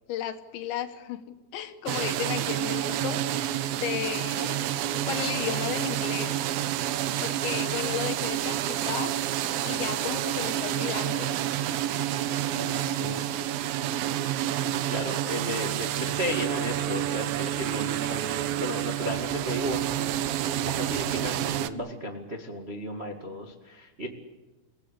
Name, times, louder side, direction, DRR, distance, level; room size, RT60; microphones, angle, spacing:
voice 1, 0.1-1.2 1.5-3.2 3.7-6.4 7.2-9.1 9.6-11.4 12.7-12.8 15.1-15.3 15.6-15.8, left 10 dB, 75° left, 7 dB, 3.7 m, -34 dB
sound 1, 1.9-21.7, right 12 dB, 85° right, 2.0 m, -29 dB
voice 2, 12.4-13.2 14.9-20.1 20.6-24.1, equal, 45° right, 1 dB, 0.7 m, -34 dB
29.0 x 18.0 x 8.3 m, 1.2 s
omnidirectional pair, 5.4 m